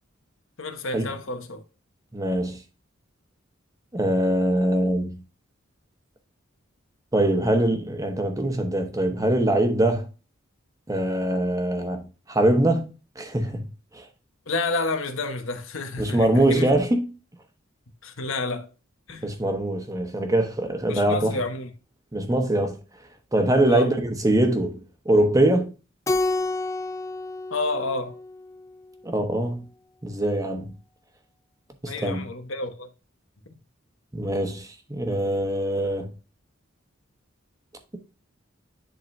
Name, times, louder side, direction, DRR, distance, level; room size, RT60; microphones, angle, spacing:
voice 1, 0.6-1.6 14.5-16.7 18.0-18.7 19.1-19.3 20.9-21.7 23.6-23.9 27.5-28.2 31.9-32.9, left 3 dB, 75° left, 1.2 m, -30 dB
voice 2, 2.1-2.6 3.9-5.2 7.1-10.1 10.9-12.9 13.2-13.7 13.9-14.0 16.0-17.1 19.2-21.3 22.1-22.8 23.3-24.8 25.0-25.7 29.0-29.6 30.0-30.7 31.8-32.3 34.1-36.1, right 1 dB, 15° right, 1.1 m, -23 dB
Keyboard (musical), 26.1-28.7, left 2 dB, 15° left, 0.3 m, -29 dB
10.5 x 3.9 x 2.7 m
head